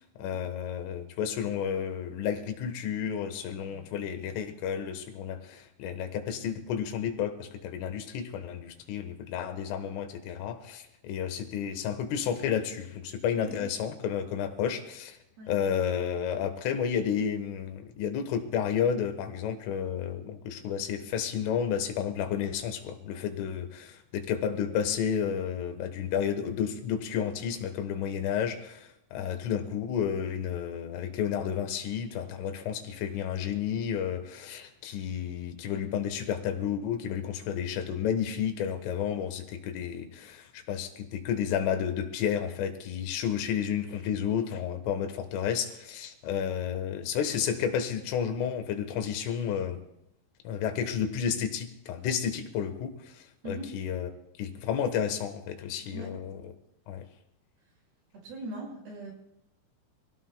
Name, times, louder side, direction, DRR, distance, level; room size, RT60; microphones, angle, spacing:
voice 1, 0.2-15.2 15.5-49.8 50.5-54.1 54.4-56.4 56.9-57.1, left 8 dB, 85° left, 7 dB, 3.9 m, -31 dB
voice 2, 58.1-59.1, right 1 dB, 55° right, -2 dB, 7.8 m, -41 dB
26.0 x 17.0 x 2.3 m, 0.84 s
omnidirectional pair, 5.6 m